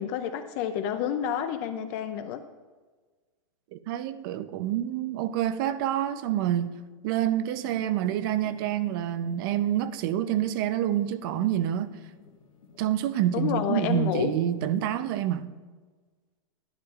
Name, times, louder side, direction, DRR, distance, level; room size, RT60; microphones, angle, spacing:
voice 1, 0.0-2.4 13.3-14.3, left 9 dB, 35° left, 0.4 m, -29 dB
voice 2, 3.7-6.8 7.0-11.9 12.8-15.5, right 11 dB, 40° right, 0.5 m, -27 dB
sound 1, 7.5-15.2, left 7 dB, 90° left, 1.5 m, -50 dB
11.0 x 10.5 x 2.4 m
hypercardioid pair, 150°, 17 cm